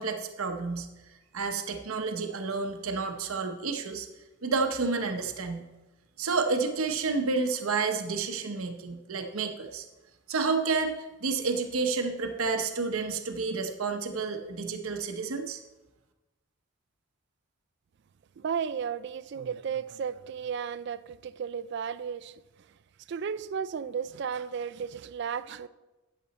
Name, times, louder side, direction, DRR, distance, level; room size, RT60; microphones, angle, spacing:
voice 1, 0.0-4.1 4.4-5.6 6.2-9.9 10.3-15.6, right 4 dB, 75° right, 0.8 m, -30 dB
voice 2, 18.4-22.3 23.1-25.7, right 7 dB, 50° right, 0.3 m, -34 dB
11.5 x 6.9 x 4.2 m
head